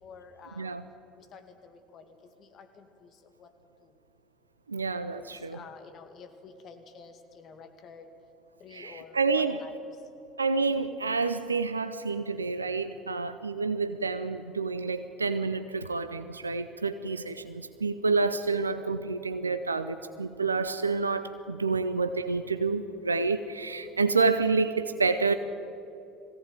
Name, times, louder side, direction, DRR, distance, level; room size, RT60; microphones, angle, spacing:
voice 1, 0.0-0.7 1.2-3.1 3.4-3.5 3.8-3.9 5.1-8.1 8.6-9.8, left 5 dB, 50° left, 6 dB, 2.3 m, -50 dB
voice 2, 4.7-5.6 8.7-9.6 10.4-25.3, right 4 dB, 90° right, 10 dB, 0.6 m, -28 dB
21.0 x 17.0 x 9.0 m, 2.8 s
figure-of-eight pair, 65°, 0 cm